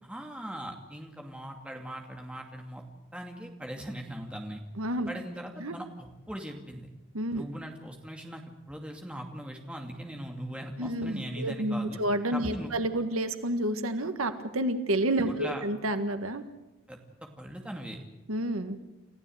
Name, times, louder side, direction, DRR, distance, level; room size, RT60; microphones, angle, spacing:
voice 1, 0.0-2.8 3.1-4.6 5.1-6.9 7.3-8.4 8.7-12.0 12.3-12.7 15.3-15.6 16.9-17.0 17.4-18.0, equal, 5° right, 1 dB, 2.5 m, -40 dB
voice 2, 4.8-5.1 5.6-5.7 7.1-7.4 10.8-16.4 18.3-18.8, right 1 dB, 85° right, 9 dB, 1.6 m, -29 dB
29.0 x 14.5 x 7.9 m, 1.0 s
head